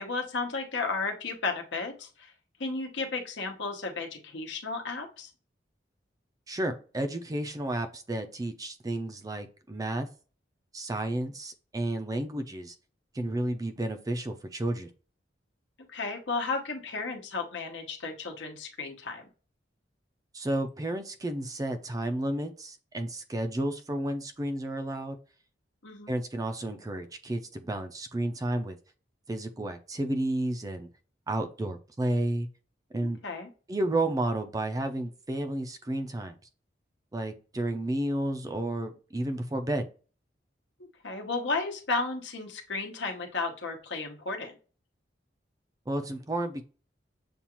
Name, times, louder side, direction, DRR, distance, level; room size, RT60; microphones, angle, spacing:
voice 1, 0.0-2.3 2.6-5.3 15.9-19.2 25.8-26.1 33.2-33.5 41.0-44.5, left 3 dB, 70° left, 3 dB, 1.0 m, -33 dB
voice 2, 6.5-10.1 10.7-12.7 13.1-14.9 20.3-25.2 26.1-28.8 29.3-30.9 31.3-32.5 32.9-33.2 33.7-36.4 37.1-39.9 45.9-46.6, right 1 dB, 20° right, 7 dB, 0.4 m, -31 dB
7.0 x 2.4 x 2.9 m, 0.36 s
head